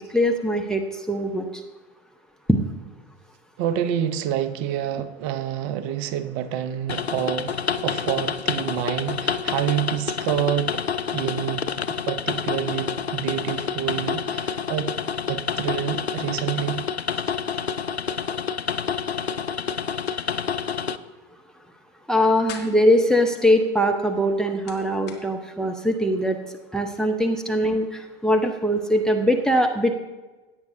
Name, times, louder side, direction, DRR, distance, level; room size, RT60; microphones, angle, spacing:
voice 1, 0.0-1.6 2.5-2.6 22.1-26.4 26.7-29.9, equal, ahead, 7 dB, 0.6 m, -21 dB
voice 2, 3.6-10.8 11.1-11.6 12.1-14.9 15.3-16.9, right 10 dB, 40° right, 13 dB, 0.7 m, -27 dB
sound 1, 6.9-21.0, left 6 dB, 90° left, 0.5 m, -28 dB
sound 2, 19.7-20.2 20.5-20.6 22.1-23.0 24.1-25.2, left 8 dB, 35° left, 1.6 m, -42 dB
16.5 x 9.2 x 2.7 m, 1.2 s
figure-of-eight pair, 85°, 31 cm